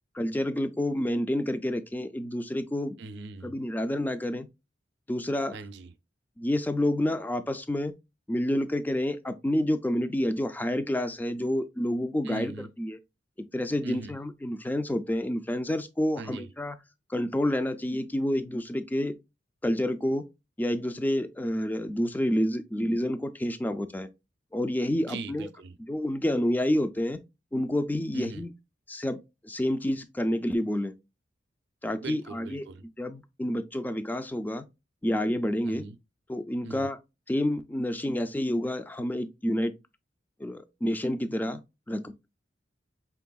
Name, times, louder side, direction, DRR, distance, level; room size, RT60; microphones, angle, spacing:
voice 1, 0.1-3.0 3.4-4.5 5.1-5.6 6.4-7.9 8.3-13.0 13.4-16.8 17.1-19.1 19.6-20.3 20.6-24.1 24.5-25.5 25.8-27.2 27.5-28.5 28.9-30.9 31.8-32.7 33.0-34.7 35.0-35.9 36.3-37.0 37.3-39.7 40.4-41.6 41.9-42.3, left 1 dB, 10° left, 0.3 m, -29 dB
voice 2, 3.0-3.6 5.5-5.9 12.2-12.7 13.8-14.1 16.2-16.5 25.0-25.8 28.1-28.4 32.0-32.8 35.6-36.0 36.6-36.9, right 3 dB, 65° right, 0.5 m, -40 dB
4.5 x 3.3 x 2.2 m
head